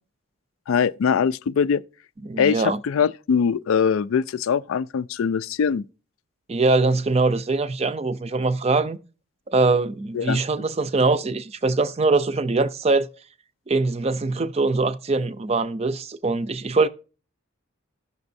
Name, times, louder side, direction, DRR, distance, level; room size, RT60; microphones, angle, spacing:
voice 1, 0.7-1.8 2.4-5.8 10.1-10.4, left 6 dB, 75° left, 0.3 m, -22 dB
voice 2, 2.2-2.8 6.5-9.0 9.5-13.1 13.7-16.9, right 3 dB, 30° right, 0.4 m, -22 dB
16.0 x 6.2 x 2.6 m
head